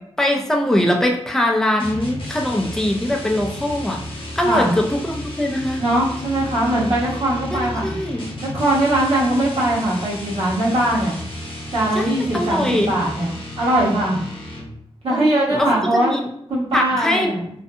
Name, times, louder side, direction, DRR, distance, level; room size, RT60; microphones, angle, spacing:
voice 1, 0.2-4.0 4.4-5.8 7.5-8.3 11.9-13.0 15.1-15.7 16.0-16.2 16.7-17.4, left 1 dB, 5° left, 1 dB, 0.3 m, -21 dB
sound 1, 1.8-14.9, left 1 dB, 55° left, 0.6 m, -33 dB
voice 2, 5.8-8.0 8.4-11.1 11.7-14.2 15.0-16.1 16.5-17.4, right 1 dB, 65° right, -6 dB, 1.0 m, -20 dB
2.5 x 2.5 x 2.3 m, 0.73 s
wide cardioid pair, 165°, 11 cm